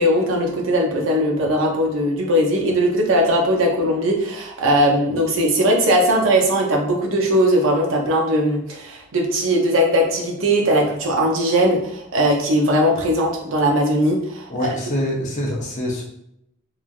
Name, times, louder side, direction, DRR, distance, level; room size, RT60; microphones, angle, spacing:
voice 1, 0.0-14.7, equal, 75° right, 0 dB, 0.6 m, -19 dB
voice 2, 14.5-16.0, equal, 35° left, -1 dB, 0.6 m, -25 dB
3.0 x 2.4 x 2.4 m, 0.78 s
head